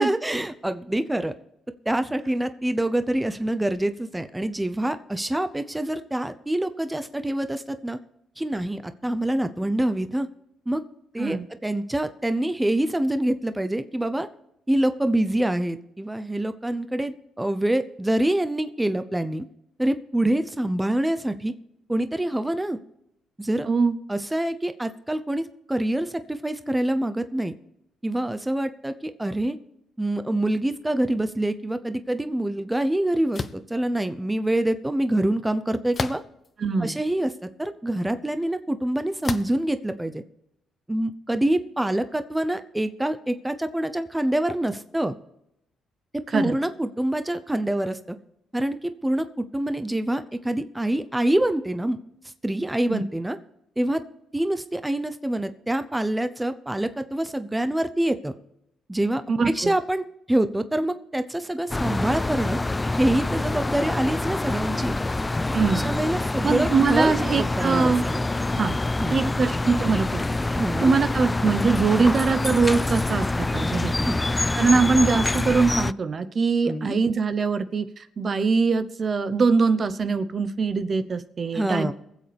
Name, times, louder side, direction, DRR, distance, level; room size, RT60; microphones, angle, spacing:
voice 1, 0.0-1.3 1.9-8.0 8.4-10.3 10.7-10.8 11.1-14.3 14.7-19.4 19.8-21.5 21.9-22.8 23.4-23.7 24.1-27.5 28.0-29.6 30.0-36.2 36.8-40.2 40.9-45.1 46.1-48.2 48.5-52.0 52.4-53.4 53.8-54.0 54.3-58.3 58.9-62.6 63.0-65.0 65.5-68.3 69.0-69.3 70.6-70.9 74.0-74.2 76.7-76.9 81.5-81.9, right 1 dB, 10° right, 10 dB, 0.7 m, -26 dB
voice 2, 23.7-24.0 36.6-37.0 46.3-46.6 52.9-53.0 59.3-59.7 65.5-65.9 66.4-68.0 68.5-68.8 69.1-74.1 74.5-81.9, right 4 dB, 45° right, 11 dB, 0.9 m, -23 dB
sound 1, 33.3-33.7 35.9-36.5 37.2-37.3 39.2-39.6, left 4 dB, 35° left, 0.8 m, -30 dB
sound 2, 61.7-75.9, left 2 dB, 15° left, 0.3 m, -26 dB
23.0 x 7.8 x 3.5 m, 0.81 s
cardioid pair, 90°, 0 cm